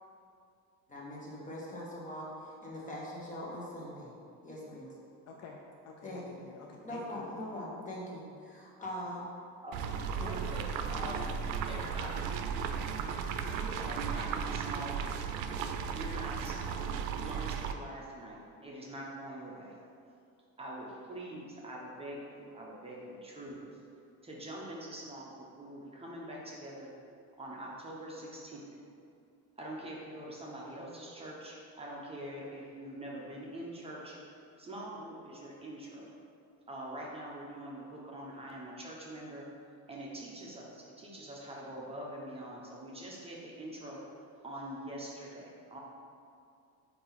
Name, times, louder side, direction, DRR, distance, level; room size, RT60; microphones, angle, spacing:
voice 1, 0.9-4.1 4.4-4.9 6.0-6.2 6.8-9.3 10.2-10.4, left 1 dB, 25° left, -5 dB, 1.3 m, -42 dB
voice 2, 5.3-7.5, left 4 dB, 50° left, 1 dB, 0.5 m, -50 dB
sound 1, 9.7-17.7, right 7 dB, 85° right, 0.5 m, -35 dB
voice 3, 10.2-11.4 11.7-15.2 15.8-19.8 20.6-23.8 24.2-26.9 27.4-28.7 29.6-36.1 36.7-39.5 39.9-44.0 44.4-45.8, right 1 dB, 15° right, -4 dB, 0.9 m, -44 dB
8.6 x 2.9 x 4.0 m, 2.5 s
cardioid pair, 135°, 33 cm